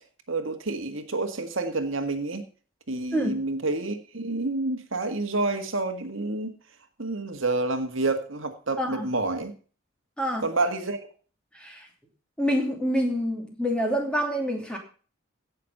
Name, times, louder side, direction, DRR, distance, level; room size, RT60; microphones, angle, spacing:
voice 1, 0.3-2.4 2.9-6.5 7.0-9.5 10.4-11.0, right 2 dB, 70° right, 1.8 m, -28 dB
voice 2, 11.5-11.9 12.4-14.8, equal, 5° left, 2.8 m, -27 dB
16.5 x 6.6 x 5.4 m
head